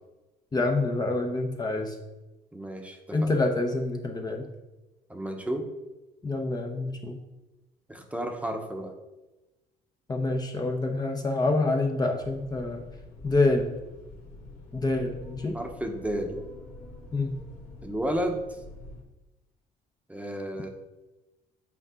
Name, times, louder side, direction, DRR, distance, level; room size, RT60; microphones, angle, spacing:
voice 1, 0.5-2.0 3.1-4.5 6.2-7.2 10.1-12.8 13.2-13.8 14.7-15.6 17.1-17.4, left 2 dB, 25° left, 3 dB, 0.8 m, -27 dB
voice 2, 2.5-3.3 5.1-5.7 7.9-8.9 15.5-16.4 17.8-18.4 20.1-20.7, right 1 dB, 10° right, 4 dB, 1.0 m, -32 dB
sound 1, 12.2-19.0, left 2 dB, 75° left, 2.4 m, -46 dB
8.4 x 5.4 x 3.8 m, 1.1 s
cardioid pair, 110°, 17 cm